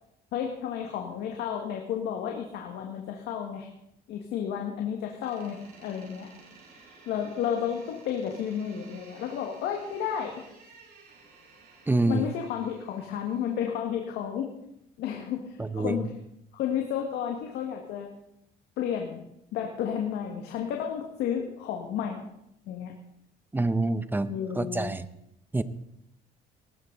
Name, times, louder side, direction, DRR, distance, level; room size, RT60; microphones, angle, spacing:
voice 1, 0.3-3.7 4.1-6.3 7.1-10.4 12.1-14.5 15.0-16.1 16.5-18.1 18.8-19.2 19.5-22.2 22.7-22.9 24.3-25.0, left 8 dB, 80° left, 2 dB, 1.9 m, -32 dB
Door, 5.2-13.7, right 4 dB, 65° right, 7.1 m, -54 dB
voice 2, 11.9-12.3 15.6-16.0 23.5-24.3 24.6-25.1 25.5-25.6, right 2 dB, 10° right, 14 dB, 0.8 m, -26 dB
18.5 x 13.5 x 4.0 m, 0.79 s
cardioid pair, 110°, 17 cm